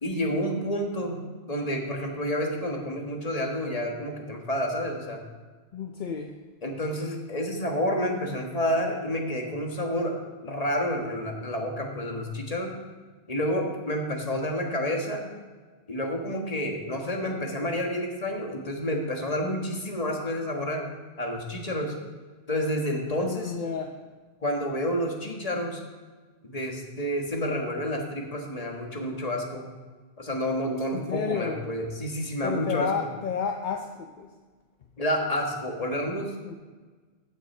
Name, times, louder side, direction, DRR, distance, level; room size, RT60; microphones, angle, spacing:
voice 1, 0.0-5.2 6.6-10.1 10.4-12.7 13.3-15.3 15.9-20.8 21.2-21.9 22.5-23.5 24.4-25.8 26.4-29.6 30.2-32.9 35.0-36.3, equal, 30° left, 1 dB, 1.5 m, -29 dB
voice 2, 5.7-6.4 23.2-24.0 30.9-31.6 32.4-34.3 36.5-36.6, left 6 dB, 50° left, 4 dB, 0.6 m, -31 dB
15.0 x 6.2 x 4.3 m, 1.4 s
omnidirectional pair, 1.2 m